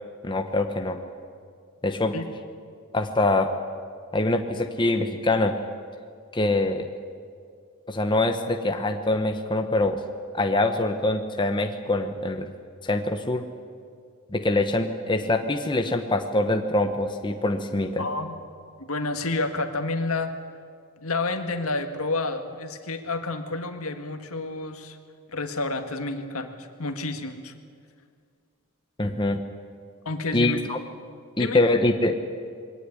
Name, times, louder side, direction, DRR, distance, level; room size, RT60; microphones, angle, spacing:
voice 1, 0.2-1.0 1.8-2.1 2.9-3.5 4.1-5.6 6.3-6.9 7.9-10.0 10.3-12.5 12.8-13.4 14.3-18.1 29.0-29.4 30.3-30.8 31.4-32.1, left 2 dB, 20° left, 5 dB, 1.0 m, -24 dB
voice 2, 18.0-18.4 18.8-20.3 21.0-25.0 25.3-27.5 30.1-30.6 31.4-31.6, left 3 dB, 75° left, 7 dB, 1.8 m, -29 dB
22.0 x 18.0 x 10.0 m, 2.2 s
head